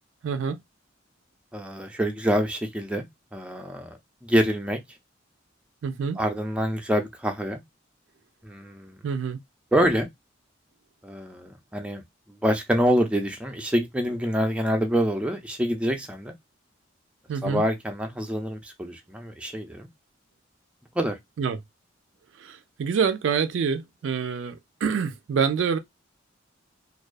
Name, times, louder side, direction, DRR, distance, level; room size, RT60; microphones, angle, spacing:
voice 1, 0.2-0.6 5.8-6.2 9.0-9.4 17.3-17.6 21.4-21.6 22.4-25.8, right 6 dB, 75° right, 0.3 m, -26 dB
voice 2, 1.5-3.0 3.3-4.8 6.2-7.6 8.4-9.0 9.7-10.1 11.0-12.0 12.4-16.3 17.4-19.9 21.0-21.2, equal, 5° right, 0.4 m, -26 dB
2.3 x 2.2 x 2.4 m
head